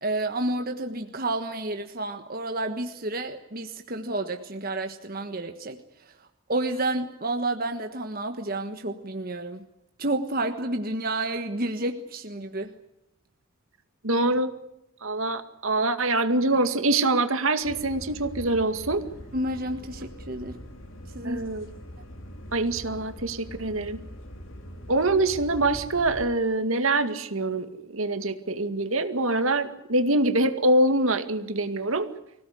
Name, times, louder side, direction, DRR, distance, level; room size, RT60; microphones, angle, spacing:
voice 1, 0.0-5.8 6.5-9.6 10.0-12.7 19.3-20.6 21.1-21.5, right 2 dB, 45° right, 6 dB, 1.4 m, -30 dB
voice 2, 14.0-14.5 15.0-19.0 21.2-21.7 22.5-24.0 24.9-32.1, right 2 dB, 80° right, 8 dB, 2.2 m, -24 dB
sound 1, 17.6-26.3, equal, 65° left, 3.5 m, -42 dB
25.0 x 17.5 x 9.6 m, 0.87 s
head